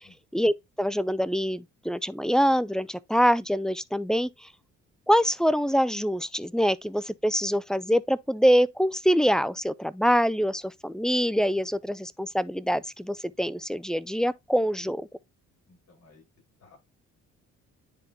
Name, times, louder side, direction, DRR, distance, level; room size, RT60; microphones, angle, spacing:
voice 1, 0.3-4.5 5.1-15.1, equal, ahead, 0.3 m, -25 dB
voice 2, 15.7-16.2 16.6-16.8, left 3 dB, 55° left, 4.9 m, -56 dB
10.0 x 3.7 x 2.8 m
cardioid pair, 90°, 30 cm